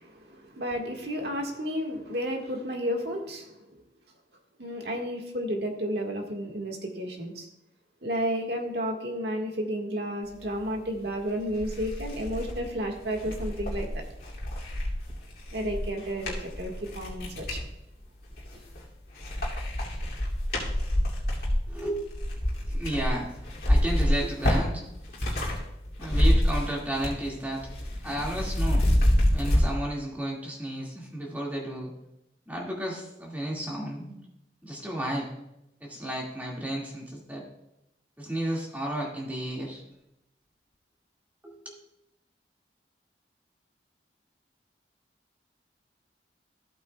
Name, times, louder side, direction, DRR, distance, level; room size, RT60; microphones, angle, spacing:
voice 1, 0.0-3.8 4.6-7.5 8.0-14.0 15.5-17.6, equal, 65° right, 1 dB, 1.6 m, -32 dB
sound 1, 11.0-11.1 11.5-17.7 18.2-18.8 19.1-25.6 25.9-27.3 27.5-29.6, equal, 55° left, 2.5 m, -27 dB
voice 2, 21.7-22.0 22.6-24.9 26.0-27.7 28.0-28.8 29.3-31.9 32.5-34.1 34.6-35.3 35.8-37.4 38.2-39.8 41.4-41.7, right 1 dB, 10° right, -3 dB, 2.0 m, -33 dB
14.0 x 8.6 x 2.3 m, 0.86 s
head